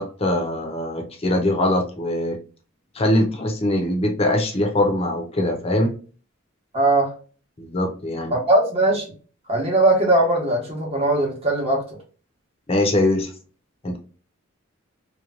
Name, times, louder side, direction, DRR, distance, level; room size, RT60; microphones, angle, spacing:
voice 1, 0.0-2.4 2.9-5.9 7.6-8.4 12.7-13.3 13.8-14.0, left 1 dB, 30° left, 0.6 m, -22 dB
voice 2, 6.7-7.1 8.3-9.1 9.5-11.8, right 2 dB, 30° right, 1.0 m, -19 dB
3.0 x 2.1 x 2.4 m
head